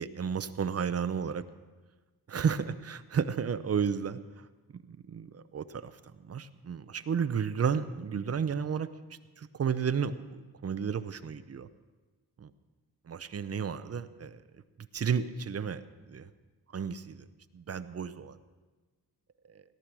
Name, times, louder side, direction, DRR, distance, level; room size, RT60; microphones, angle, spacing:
voice 1, 0.0-1.4 2.3-4.5 4.7-6.0 6.2-8.9 9.4-11.7 12.4-12.5 13.1-14.6 14.9-16.3 16.7-17.2 17.5-18.4 19.5-19.6, right 7 dB, 40° right, 11 dB, 0.7 m, -32 dB
17.5 x 11.5 x 6.1 m, 1.3 s
wide cardioid pair, 165°, 38 cm